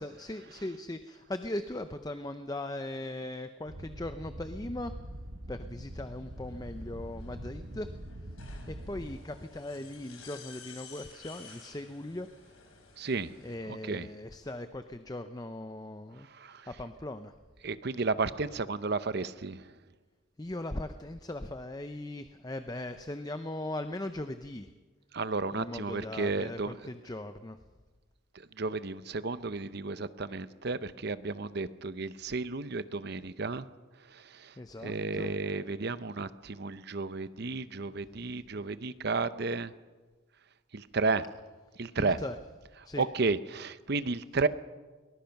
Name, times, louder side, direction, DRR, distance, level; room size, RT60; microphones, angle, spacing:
voice 1, 0.0-5.0 5.5-7.9 8.7-12.3 13.4-16.3 16.7-17.3 20.4-24.7 25.5-27.6 34.6-35.3 42.0-42.4 42.8-43.0, left 1 dB, 20° left, 9 dB, 0.6 m, -39 dB
sound 1, 3.7-9.2, right 1 dB, 70° right, 1.8 m, -43 dB
sound 2, 5.9-13.5, left 5 dB, 90° left, 4.1 m, -54 dB
voice 2, 13.0-13.4 13.7-14.1 16.3-16.7 17.6-19.7 25.1-26.7 28.3-33.7 34.1-34.5 34.8-39.7 40.7-41.2 41.8-42.2 43.0-44.5, right 3 dB, 50° right, 14 dB, 0.7 m, -32 dB
23.0 x 19.5 x 5.9 m, 1.3 s
head